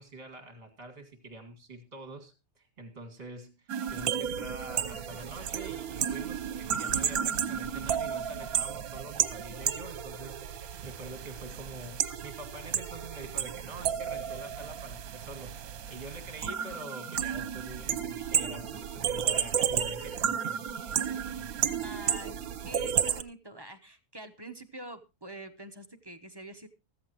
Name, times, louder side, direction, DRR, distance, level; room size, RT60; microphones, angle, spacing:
voice 1, 0.0-20.7, right 2 dB, 40° right, 8 dB, 2.6 m, -46 dB
sound 1, 3.7-23.2, right 8 dB, 75° right, 1.3 m, -32 dB
voice 2, 21.8-26.7, right 1 dB, 20° right, 6 dB, 0.8 m, -45 dB
15.0 x 14.0 x 3.0 m, 0.27 s
omnidirectional pair, 1.6 m